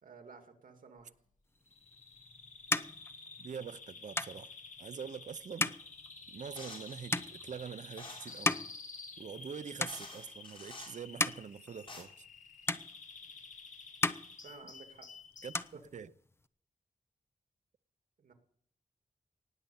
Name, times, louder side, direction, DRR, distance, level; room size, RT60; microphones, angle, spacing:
voice 1, 0.0-1.1 14.4-15.1 15.7-15.8 18.2-18.3, right 4 dB, 80° right, 2.5 m, -53 dB
Bird vocalization bird call bird song, 1.7-15.7, left 4 dB, 65° left, 2.6 m, -51 dB
sound 1, 1.8-9.5 9.8-10.5 10.9-12.4 12.7-13.5 13.8-15.1 15.3-16.5, left 2 dB, 20° left, 0.6 m, -37 dB
voice 2, 3.4-4.5 4.8-5.8 6.3-8.5 9.2-12.1 15.4-15.6 15.9-16.1, right 7 dB, 60° right, 0.7 m, -44 dB
sound 2, 6.6-7.0 8.0-8.4 9.4-9.5 9.9-11.0 11.6-12.0, left 2 dB, 40° left, 6.8 m, -49 dB
19.0 x 7.8 x 7.1 m
wide cardioid pair, 160°, 14 cm